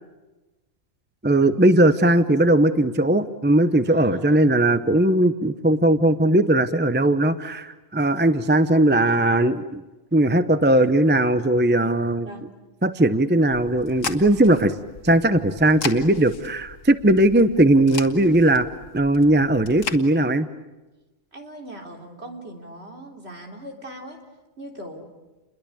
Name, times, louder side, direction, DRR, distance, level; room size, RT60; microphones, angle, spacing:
voice 1, 1.2-9.8 10.1-12.3 12.8-14.7 15.0-18.7 18.9-20.5, right 1 dB, 10° right, 11 dB, 0.7 m, -18 dB
voice 2, 3.9-4.5 12.3-12.6 21.3-24.2 24.6-25.1, right 1 dB, 55° right, 2 dB, 3.9 m, -40 dB
sound 1, 13.5-20.0, left 5 dB, 85° left, 2.0 m, -36 dB
29.5 x 22.5 x 8.6 m, 1.1 s
omnidirectional pair, 1.3 m